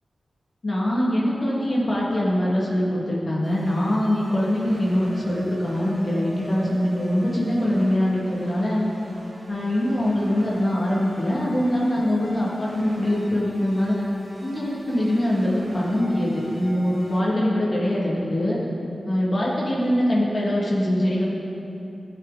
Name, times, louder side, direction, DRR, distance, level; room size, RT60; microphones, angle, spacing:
voice 1, 0.6-8.8 9.5-13.9 14.4-18.6 19.0-21.2, left 1 dB, 45° left, -6 dB, 2.6 m, -23 dB
sound 1, 3.4-17.2, right 1 dB, 60° right, 2.8 m, -43 dB
15.0 x 7.5 x 4.3 m, 2.9 s
wide cardioid pair, 70°, 0 cm